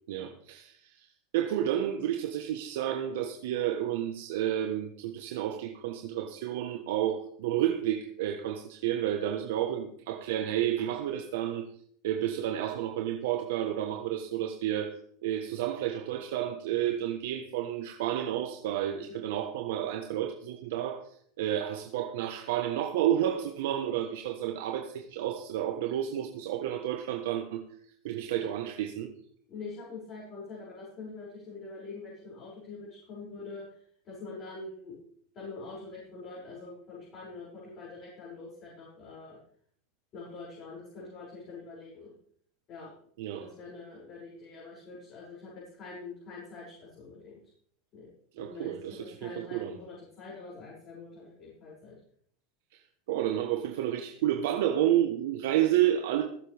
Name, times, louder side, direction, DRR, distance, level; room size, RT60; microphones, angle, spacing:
voice 1, 0.1-1.1 1.3-11.6 12.0-14.9 15.2-21.0 21.4-27.6 28.0-29.1 43.2-43.5 48.4-49.8 53.1-56.2, right 11 dB, 75° right, 4 dB, 1.3 m, -30 dB
voice 2, 29.5-35.0 35.3-39.4 40.1-42.1 42.7-42.9 43.4-47.4 47.9-48.1 48.4-51.9, left 3 dB, 40° left, -8 dB, 6.5 m, -45 dB
20.0 x 7.6 x 3.5 m, 0.62 s
hypercardioid pair, 110°, 0 cm